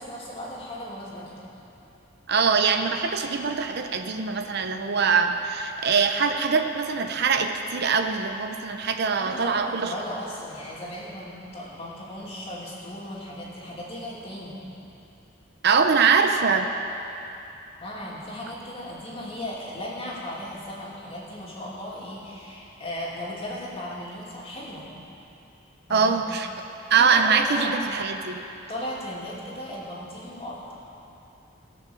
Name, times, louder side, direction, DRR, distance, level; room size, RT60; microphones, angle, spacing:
voice 1, 0.0-1.4 9.1-14.6 17.8-24.9 25.9-26.2 26.9-27.7 28.7-30.7, left 1 dB, 30° left, -5 dB, 2.6 m, -36 dB
voice 2, 2.3-9.9 15.6-16.7 25.9-26.5 26.9-28.4, right 5 dB, 60° right, 6 dB, 0.7 m, -23 dB
18.0 x 6.1 x 7.0 m, 2.8 s
head